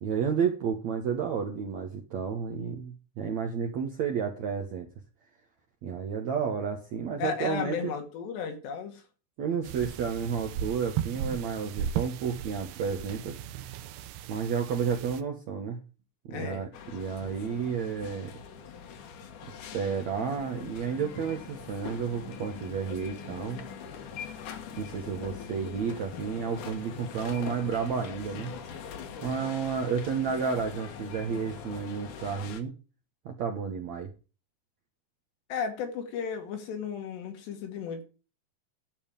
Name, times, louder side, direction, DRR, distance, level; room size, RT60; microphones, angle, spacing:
voice 1, 0.0-4.9 5.8-7.9 9.4-13.4 14.3-15.8 16.3-18.3 19.7-23.6 24.8-28.5 29.2-32.7 33.3-34.1, right 6 dB, 65° right, 3 dB, 1.9 m, -31 dB
voice 2, 7.2-9.0 16.3-16.7 29.8-30.0 35.5-38.0, left 6 dB, 85° left, 5 dB, 4.2 m, -34 dB
sound 1, 9.6-15.2, right 9 dB, 85° right, 2.9 m, -36 dB
sound 2, 16.7-32.6, left 7 dB, 60° left, 2.5 m, -42 dB
11.5 x 5.4 x 8.8 m, 0.35 s
omnidirectional pair, 4.8 m